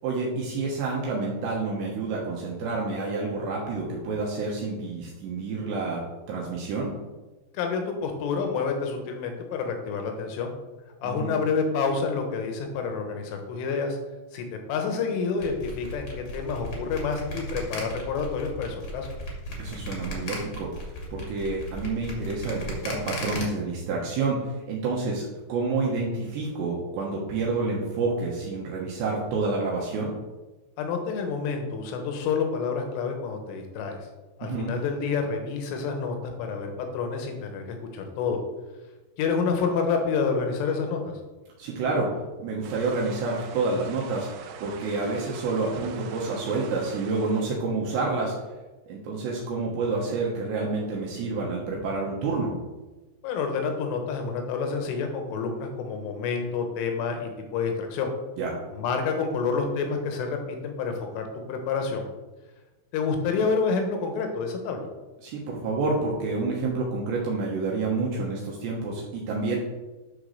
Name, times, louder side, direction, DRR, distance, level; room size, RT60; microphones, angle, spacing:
voice 1, 0.0-6.0 6.3-6.9 11.0-11.4 19.6-20.7 21.1-30.1 34.4-34.7 41.6-42.1 42.4-44.3 44.6-48.3 48.9-52.5 58.4-58.5 65.2-69.6, right 3 dB, 70° right, -3 dB, 3.2 m, -28 dB
voice 2, 7.5-10.5 11.0-14.0 14.3-19.1 30.8-34.0 34.4-38.4 39.2-41.1 53.2-58.1 58.7-62.1 62.9-64.9, left 5 dB, 80° left, 4 dB, 3.8 m, -28 dB
sound 1, 15.4-23.4, left 1 dB, 40° left, 1.9 m, -35 dB
sound 2, 42.6-47.6, right 6 dB, 85° right, 3.4 m, -44 dB
10.5 x 4.7 x 6.5 m, 1.2 s
omnidirectional pair, 5.7 m